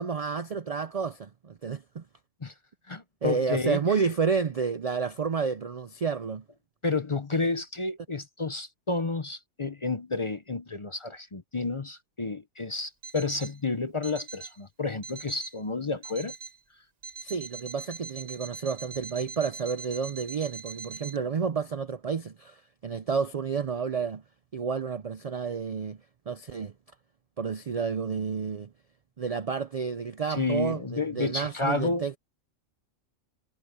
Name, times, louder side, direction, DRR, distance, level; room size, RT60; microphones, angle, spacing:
voice 1, 0.0-2.0 3.2-6.4 17.2-24.2 24.5-26.0 26.3-26.7 27.4-28.7 29.2-32.2, right 5 dB, 65° right, 0.3 m, -30 dB
voice 2, 2.9-4.0 6.8-16.3 30.3-32.1, left 3 dB, 30° left, 0.7 m, -31 dB
Alarm, 13.0-13.6 14.0-14.6 15.0-15.6 16.0-16.6 17.0-21.2, right 5 dB, 35° right, 1.1 m, -42 dB
omnidirectional pair, 1.4 m